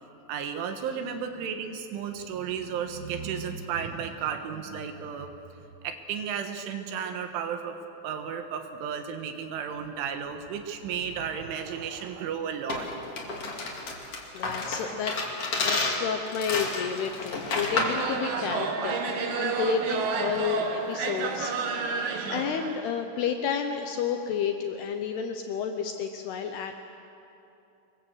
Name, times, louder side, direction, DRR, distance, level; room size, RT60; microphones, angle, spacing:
voice 1, 0.3-5.3 5.8-7.8 8.0-12.9, right 7 dB, 80° right, 6 dB, 3.8 m, -33 dB
sound 1, 12.7-18.0, left 3 dB, 40° left, 2.6 m, -30 dB
voice 2, 14.3-15.2 15.6-21.6 21.9-26.9, left 7 dB, 75° left, 6 dB, 2.5 m, -31 dB
sound 2, 17.7-22.8, right 5 dB, 60° right, 2.8 m, -30 dB
25.0 x 21.5 x 8.1 m, 2.8 s
omnidirectional pair, 5.7 m